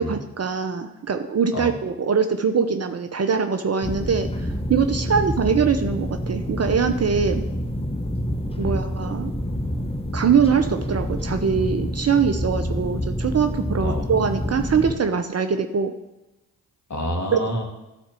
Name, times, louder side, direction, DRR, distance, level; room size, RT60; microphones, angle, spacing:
voice 1, 0.0-7.4 8.6-9.3 10.1-15.9 17.3-17.4, right 6 dB, 35° right, 7 dB, 0.8 m, -22 dB
sound 1, 3.8-14.9, equal, 15° left, 1.3 m, -27 dB
voice 2, 16.9-17.6, equal, 40° left, 2 dB, 2.6 m, -28 dB
12.0 x 4.3 x 7.6 m, 0.98 s
hypercardioid pair, 40°, 45 cm